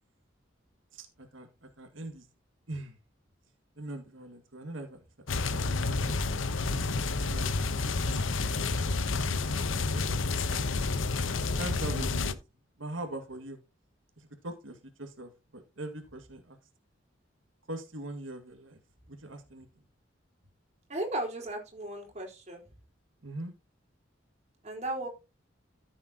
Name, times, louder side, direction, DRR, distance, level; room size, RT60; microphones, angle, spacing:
voice 1, 0.9-2.3 2.7-3.0 3.8-6.2 7.3-10.7 11.6-12.4 12.8-13.6 14.2-16.6 17.7-18.8 19.1-19.7 23.2-23.5, right 1 dB, 85° right, 5 dB, 2.0 m, -42 dB
sound 1, 5.3-12.3, left 3 dB, 90° left, 0.9 m, -30 dB
voice 2, 20.9-22.7 24.6-25.1, right 1 dB, 35° right, 1 dB, 4.1 m, -35 dB
14.0 x 7.6 x 2.9 m, 0.27 s
head